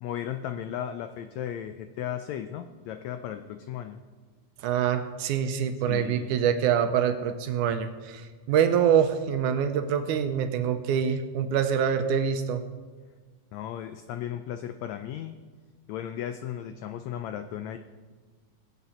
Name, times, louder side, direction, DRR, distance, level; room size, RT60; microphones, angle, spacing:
voice 1, 0.0-4.0 5.8-6.3 13.5-15.4 15.9-17.8, left 10 dB, 85° left, 8 dB, 1.6 m, -35 dB
voice 2, 4.6-12.6, right 8 dB, 75° right, 8 dB, 2.1 m, -25 dB
22.0 x 8.3 x 4.3 m, 1.4 s
omnidirectional pair, 3.8 m